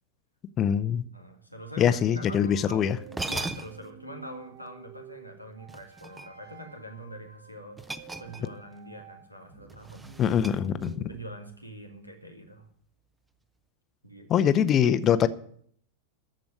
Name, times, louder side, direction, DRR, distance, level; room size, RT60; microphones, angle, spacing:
voice 1, 0.6-1.0 1.8-3.0 10.2-10.9 14.3-15.3, left 9 dB, 30° left, 13 dB, 0.7 m, -23 dB
voice 2, 1.1-2.9 3.3-10.1 11.1-12.7 14.0-14.5, equal, 90° right, 4 dB, 2.1 m, -44 dB
sound 1, 1.6-11.2, right 8 dB, 50° right, 2.1 m, -50 dB
sound 2, 2.7-2.8 3.1-4.0 5.7-6.6 7.8-8.7 9.0-9.2 9.7-11.1, right 2 dB, 10° right, 0.7 m, -38 dB
14.0 x 5.2 x 9.1 m, 0.63 s
figure-of-eight pair, 90°, 0 cm